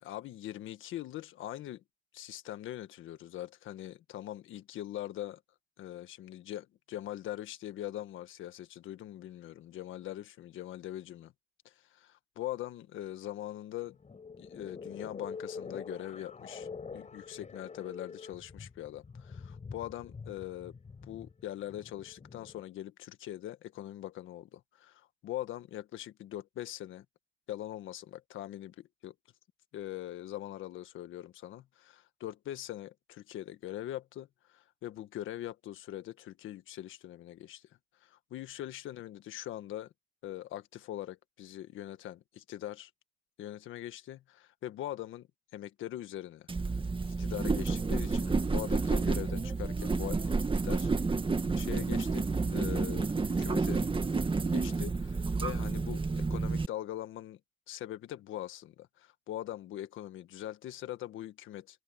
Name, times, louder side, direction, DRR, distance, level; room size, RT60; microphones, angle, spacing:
voice 1, 0.0-1.8 2.1-5.4 5.8-11.3 11.6-14.0 14.4-20.7 21.1-27.0 27.5-29.1 29.7-37.7 38.0-39.9 40.2-42.9 43.4-45.3 45.5-46.5 47.2-50.3 50.6-50.9 51.5-53.1 53.4-53.8 54.5-57.4 57.7-61.8, left 13 dB, 85° left, 1.6 m, -42 dB
sound 1, 13.9-22.6, left 5 dB, 35° left, 6.3 m, -45 dB
sound 2, 46.5-56.7, right 4 dB, 25° right, 1.9 m, -30 dB
cardioid pair, 90°, 20 cm